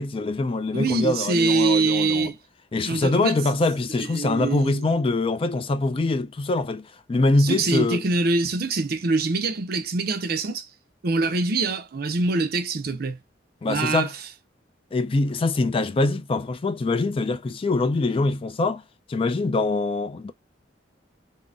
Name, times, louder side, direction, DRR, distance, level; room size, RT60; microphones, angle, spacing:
voice 1, 0.0-2.3 2.7-8.0 13.6-14.1 14.9-18.8 19.1-20.3, left 2 dB, 30° left, 0.3 m, -24 dB
voice 2, 0.7-2.4 2.8-3.4 4.1-4.9 7.4-10.7 11.0-13.2 13.7-14.1, right 3 dB, 55° right, 0.5 m, -24 dB
3.7 x 2.1 x 2.4 m
head